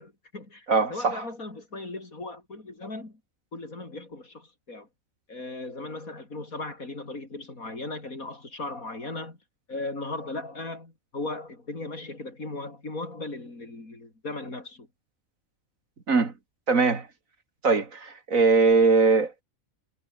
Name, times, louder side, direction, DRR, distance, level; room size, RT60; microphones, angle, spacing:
voice 1, 0.0-3.2 3.5-4.9 5.3-9.4 9.7-14.9, left 2 dB, 80° left, 5.5 m, -37 dB
voice 2, 0.7-1.2 16.1-16.3 16.7-17.1 17.6-19.4, right 4 dB, 70° right, 2.9 m, -21 dB
omnidirectional pair, 1.5 m